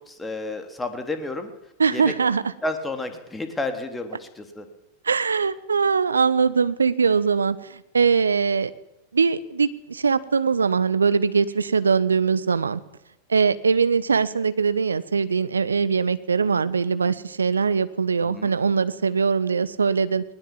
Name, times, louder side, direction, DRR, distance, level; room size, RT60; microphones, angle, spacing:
voice 1, 0.0-1.5 1.9-2.1 2.6-4.7 18.2-18.5, left 2 dB, 10° left, 6 dB, 3.3 m, -31 dB
voice 2, 1.8-2.4 5.0-8.7 9.1-12.8 13.3-20.2, right 5 dB, 75° right, 15 dB, 1.1 m, -21 dB
20.5 x 19.5 x 7.3 m, 0.87 s
figure-of-eight pair, 90°, 0 cm